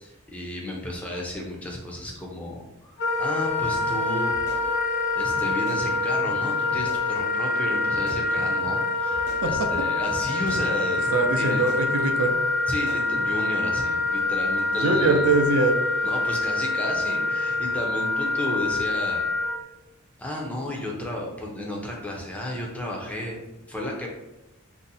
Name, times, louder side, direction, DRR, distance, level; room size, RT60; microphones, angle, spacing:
voice 1, 0.0-4.3 5.1-11.6 12.7-15.3 16.0-19.5 20.2-24.1, left 1 dB, 5° left, -2 dB, 0.5 m, -33 dB
Wind instrument woodwind instrument, 3.0-19.6, left 3 dB, 50° left, 0.7 m, -25 dB
sound 1, 3.9-4.0 4.3-5.1 5.4-5.8 6.3-6.4 6.7-7.0 7.9-8.8 9.1-9.8 10.2-10.6 11.1-11.2 11.5-11.8 12.7-13.3, equal, 35° right, 0.6 m, -41 dB
voice 2, 11.1-12.4 14.8-15.8, right 3 dB, 80° right, 5 dB, 0.4 m, -22 dB
2.6 x 2.0 x 3.9 m, 1.0 s
head